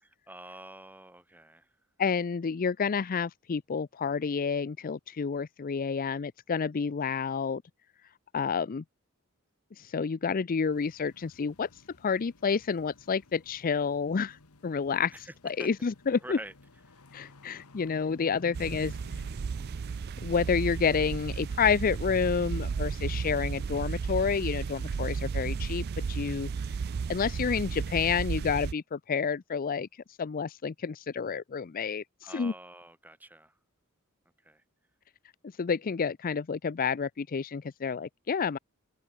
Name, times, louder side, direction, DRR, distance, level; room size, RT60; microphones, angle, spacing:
voice 1, 0.3-1.7 15.1-15.3 15.6-15.7 16.2-16.5 32.2-33.5 34.4-34.6, right 1 dB, 10° right, 3.6 m, -46 dB
voice 2, 2.0-7.6 8.3-8.8 9.8-14.4 14.6-16.4 17.1-19.0 20.2-26.5 27.1-29.9 30.2-32.5 35.6-38.6, left 6 dB, 40° left, 0.4 m, -29 dB
sound 1, 10.7-26.4, left 2 dB, 85° left, 1.5 m, -56 dB
sound 2, 18.5-28.7, right 5 dB, 45° right, 0.4 m, -33 dB
open air
head